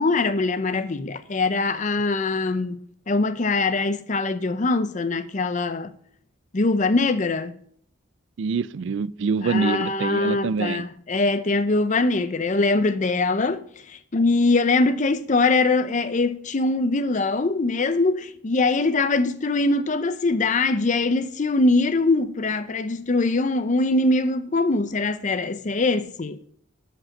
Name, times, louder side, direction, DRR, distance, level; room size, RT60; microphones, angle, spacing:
voice 1, 0.0-5.9 6.5-7.6 9.4-26.4, left 3 dB, 40° left, 0.6 m, -22 dB
voice 2, 8.4-10.8, right 5 dB, 65° right, 0.4 m, -25 dB
11.5 x 5.3 x 6.3 m
head